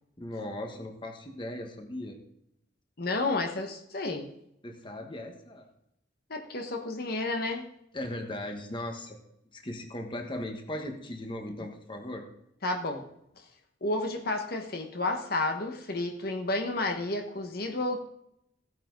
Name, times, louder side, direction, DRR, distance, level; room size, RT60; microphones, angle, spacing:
voice 1, 0.2-2.2 4.6-5.7 7.9-9.2 9.5-12.3, left 1 dB, 25° left, 4 dB, 1.3 m, -38 dB
voice 2, 3.0-4.3 6.3-7.6 12.6-13.0 13.8-18.0, left 2 dB, 55° left, 3 dB, 1.3 m, -31 dB
15.5 x 9.4 x 4.0 m, 0.79 s
head